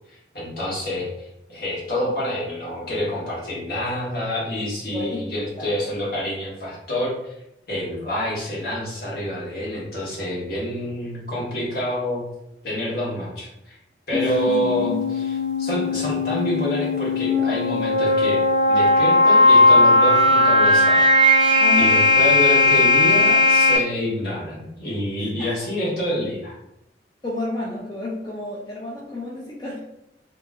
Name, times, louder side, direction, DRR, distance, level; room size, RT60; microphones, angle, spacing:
voice 1, 0.1-7.3 7.7-12.3 12.6-13.8 14.1-15.2 15.6-18.4 18.7-21.4 21.8-26.6, equal, 60° left, -6 dB, 1.4 m, -27 dB
voice 2, 4.9-5.3 5.6-5.7 14.1-15.0 21.6-21.9 25.2-25.5 27.2-29.8, left 2 dB, 25° left, -6 dB, 0.6 m, -31 dB
sound 1, 14.1-23.8, left 2 dB, 80° left, 1.5 m, -17 dB
2.9 x 2.6 x 3.5 m, 0.83 s
head